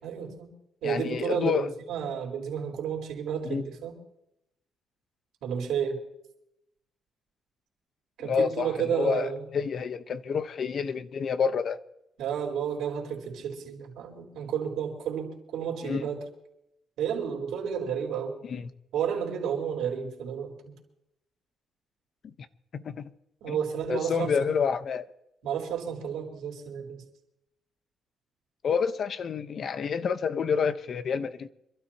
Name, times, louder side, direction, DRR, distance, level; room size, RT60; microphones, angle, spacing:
voice 1, 0.0-0.5 0.8-3.9 5.4-6.0 8.2-9.4 12.2-16.2 17.0-18.3 18.9-20.7 23.4-24.3 25.4-27.0, right 8 dB, 85° right, 4.2 m, -31 dB
voice 2, 0.8-1.7 3.4-3.6 8.2-11.8 15.8-16.1 18.4-18.7 22.2-22.3 22.7-23.1 23.5-23.6 23.9-25.1 28.6-31.5, left 6 dB, 55° left, 1.0 m, -28 dB
27.0 x 12.5 x 2.9 m
cardioid pair, 90°, 0 cm